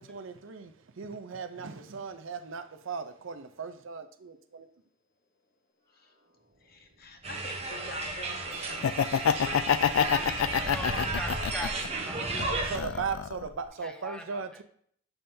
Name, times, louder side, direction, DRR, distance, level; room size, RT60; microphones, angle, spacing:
voice 1, 0.0-4.7 12.4-14.6, right 5 dB, 80° right, 9 dB, 0.6 m, -38 dB
voice 2, 6.6-8.9 9.1-9.6 10.0-10.5, left 3 dB, 50° left, 5 dB, 0.9 m, -45 dB
sound 1, 7.2-12.8, right 3 dB, 30° right, 0.8 m, -34 dB
sound 2, 7.5-13.7, equal, 55° right, 1.4 m, -42 dB
Laughter, 8.7-11.9 12.3-13.4, left 8 dB, 85° left, 0.3 m, -27 dB
voice 3, 10.6-12.9 13.8-14.6, equal, 5° left, 4 dB, 0.7 m, -42 dB
7.1 x 5.5 x 2.7 m, 0.63 s
head